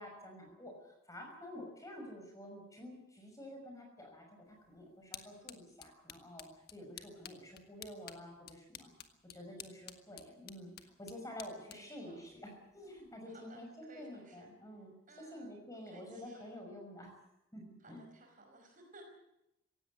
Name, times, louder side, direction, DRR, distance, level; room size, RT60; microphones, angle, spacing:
voice 1, 0.0-8.9 9.3-13.7 13.9-14.9 15.3-17.1 17.5-18.0, left 1 dB, 15° left, 2 dB, 6.0 m, -49 dB
sound 1, 4.5-13.2, left 9 dB, 50° left, 1.5 m, -55 dB
voice 2, 11.7-12.2 13.3-14.5 15.1-15.6 15.9-16.6 17.8-19.2, right 1 dB, 40° right, 3 dB, 5.3 m, -58 dB
17.0 x 16.5 x 9.8 m, 0.86 s
head